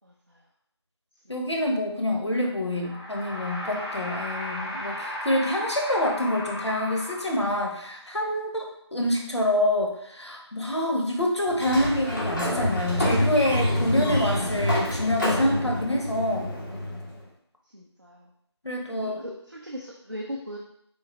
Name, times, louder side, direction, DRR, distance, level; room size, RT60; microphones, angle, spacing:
voice 1, 0.0-0.4 1.3-1.4 17.7-18.3 18.9-20.6, equal, 45° right, -2 dB, 0.5 m, -38 dB
voice 2, 1.3-16.5 18.6-19.2, left 1 dB, 70° left, 0 dB, 1.0 m, -26 dB
sound 1, 2.7-7.8, left 1 dB, 15° left, 1.7 m, -35 dB
Sliding door, 11.5-17.2, left 1 dB, 45° left, 1.2 m, -27 dB
3.9 x 3.8 x 3.1 m, 0.72 s
figure-of-eight pair, 175°, 15 cm